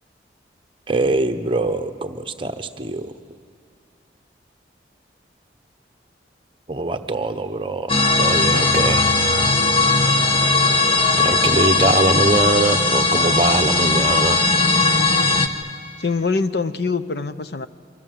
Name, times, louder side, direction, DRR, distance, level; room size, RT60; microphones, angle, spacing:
voice 1, 0.9-3.1 6.7-7.9 8.2-9.1 11.2-14.4, right 2 dB, 30° right, 7 dB, 1.0 m, -22 dB
sound 1, 7.9-15.5, left 3 dB, 30° left, 1.2 m, -18 dB
voice 2, 16.0-17.7, left 4 dB, 60° left, 12 dB, 0.8 m, -24 dB
27.5 x 24.5 x 7.8 m, 2.3 s
head